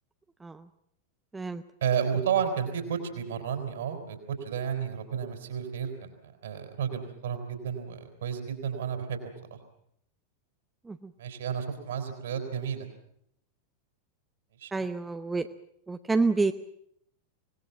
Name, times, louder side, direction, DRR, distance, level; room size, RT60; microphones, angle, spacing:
voice 1, 1.8-9.6 11.2-12.9 14.6-14.7, right 7 dB, 60° right, 6 dB, 4.5 m, -32 dB
voice 2, 14.7-15.5 15.9-16.5, right 3 dB, 10° right, 9 dB, 0.8 m, -28 dB
25.0 x 19.0 x 7.3 m, 0.71 s
figure-of-eight pair, 90°, 0 cm